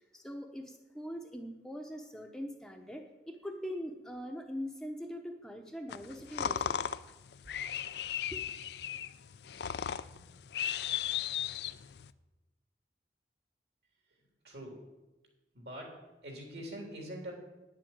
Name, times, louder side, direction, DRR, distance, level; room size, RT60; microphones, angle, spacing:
voice 1, 0.0-6.8 8.3-8.5, equal, 5° left, 2 dB, 0.8 m, -42 dB
sound 1, 5.9-12.1, left 9 dB, 65° left, 0.4 m, -36 dB
voice 2, 14.1-14.9 15.5-17.3, equal, 65° right, 1 dB, 3.5 m, -45 dB
9.7 x 7.6 x 8.8 m, 1.1 s
head